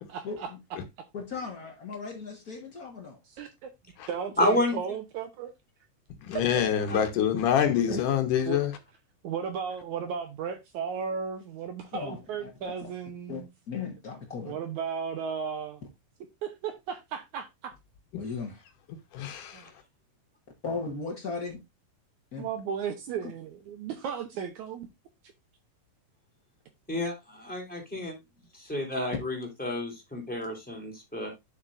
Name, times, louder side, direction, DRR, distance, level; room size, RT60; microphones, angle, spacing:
voice 1, 1.1-3.2 7.9-8.0 11.9-12.9 13.3-13.4 13.7-14.6 18.2-18.6 20.6-21.6 22.3-22.5, left 4 dB, 90° left, 0.8 m, -36 dB
voice 2, 3.3-3.7 4.1-5.5 6.3-6.5 7.9-8.0 8.5-8.6 9.2-13.5 14.5-15.8 16.4-17.7 19.5-19.7 22.4-24.9, right 7 dB, 70° right, 2.0 m, -35 dB
voice 3, 4.4-4.8 6.9-7.0 26.9-28.2 28.5-31.3, left 1 dB, 5° left, 3.0 m, -30 dB
voice 4, 6.2-8.7 19.1-19.7, left 9 dB, 70° left, 2.4 m, -26 dB
9.2 x 7.2 x 2.5 m
omnidirectional pair, 4.1 m